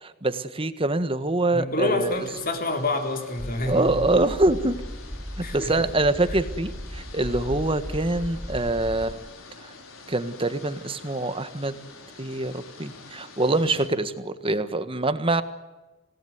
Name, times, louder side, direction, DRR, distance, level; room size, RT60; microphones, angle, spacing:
voice 1, 0.0-2.2 3.7-4.8 5.4-9.2 9.6-9.7 10.1-11.7 12.2-15.4, right 2 dB, 25° right, 1.5 m, -25 dB
voice 2, 1.5-3.9 5.4-5.9, left 2 dB, 45° left, 4.1 m, -27 dB
sound 1, 1.9-13.9, left 3 dB, 80° left, 4.7 m, -47 dB
sound 2, 3.4-9.1, equal, ahead, 1.2 m, -36 dB
27.0 x 18.5 x 9.6 m
head